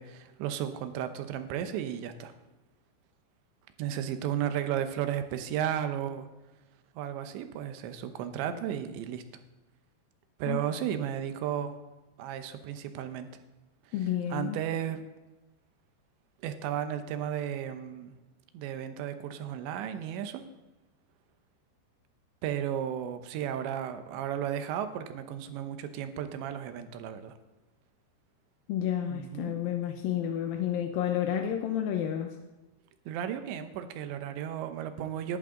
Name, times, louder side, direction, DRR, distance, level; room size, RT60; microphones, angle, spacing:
voice 1, 0.0-2.3 3.8-6.3 7.0-9.2 10.4-11.8 12.2-13.3 13.9-15.0 16.4-18.2 18.5-20.4 22.4-27.3 29.1-29.5 33.1-35.4, right 10 dB, 85° right, 9 dB, 3.2 m, -34 dB
voice 2, 13.9-14.6 28.7-32.3, left 10 dB, 80° left, 4 dB, 2.2 m, -30 dB
18.0 x 12.0 x 3.8 m, 1.1 s
omnidirectional pair, 5.0 m